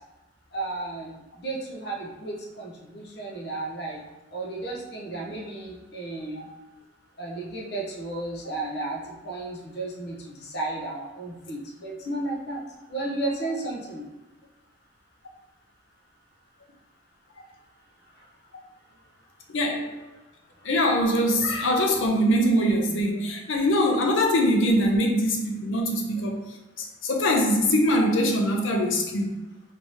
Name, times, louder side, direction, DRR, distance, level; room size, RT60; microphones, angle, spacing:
voice 1, 0.5-4.0 4.3-6.5 7.2-12.6 12.9-14.1, right 2 dB, 55° left, -2 dB, 0.8 m, -33 dB
voice 2, 19.5-20.0 20.6-26.4 26.8-29.4, equal, 90° left, 1 dB, 0.6 m, -23 dB
3.5 x 2.8 x 3.0 m, 1.1 s
head